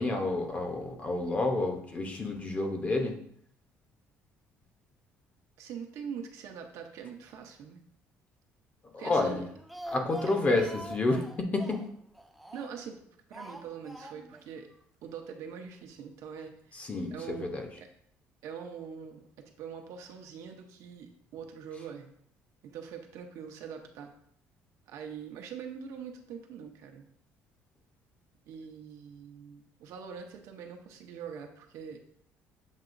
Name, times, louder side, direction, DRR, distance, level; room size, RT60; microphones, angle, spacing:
voice 1, 0.0-3.2 8.9-9.4 9.9-11.8 16.7-17.7, left 2 dB, 25° left, 4 dB, 0.7 m, -29 dB
voice 2, 5.6-7.8 9.0-9.4 12.5-13.0 13.3-14.7 15.0-16.8 17.1-17.5 18.4-22.1 22.6-24.1 24.9-27.1 28.5-32.0, right 7 dB, 75° right, 4 dB, 0.7 m, -43 dB
Speech, 9.4-12.9 13.3-14.5 14.7-14.8 15.1-15.2, right 1 dB, ahead, 0.3 m, -45 dB
7.3 x 2.9 x 2.5 m, 0.66 s
cardioid pair, 130°, 5 cm